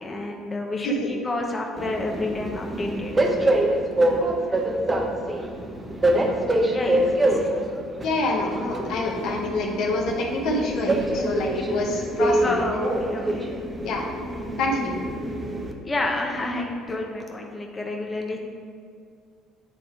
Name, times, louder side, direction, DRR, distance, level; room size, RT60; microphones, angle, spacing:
voice 1, 0.0-3.1 4.5-4.6 6.7-7.5 12.4-13.6 15.8-18.4, left 2 dB, 25° left, 1 dB, 1.0 m, -29 dB
Train, 1.8-15.7, right 1 dB, 25° right, 0.8 m, -25 dB
voice 2, 8.0-12.6 13.8-14.0 14.6-14.9, left 2 dB, 70° left, 0 dB, 1.0 m, -26 dB
8.4 x 3.7 x 4.5 m, 2.3 s
supercardioid pair, 75°, 0 cm